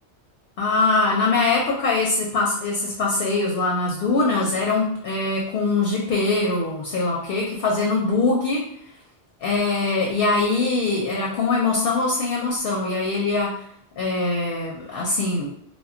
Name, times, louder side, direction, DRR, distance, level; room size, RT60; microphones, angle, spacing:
voice 1, 0.6-8.6 9.4-13.5 14.0-15.5, left 3 dB, 65° left, -2 dB, 0.7 m, -22 dB
2.2 x 2.0 x 3.6 m, 0.66 s
omnidirectional pair, 1.2 m